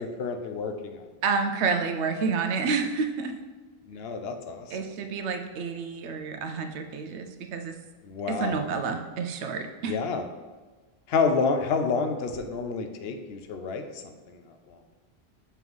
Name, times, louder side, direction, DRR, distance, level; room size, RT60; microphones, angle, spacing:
voice 1, 0.0-1.0 3.9-4.8 8.0-8.7 9.9-10.2 11.1-13.8, left 4 dB, 70° left, 6 dB, 0.8 m, -28 dB
voice 2, 1.2-3.4 4.7-7.8 8.3-10.0, right 5 dB, 90° right, 7 dB, 0.9 m, -29 dB
5.8 x 3.1 x 5.3 m, 1.3 s
omnidirectional pair, 1.1 m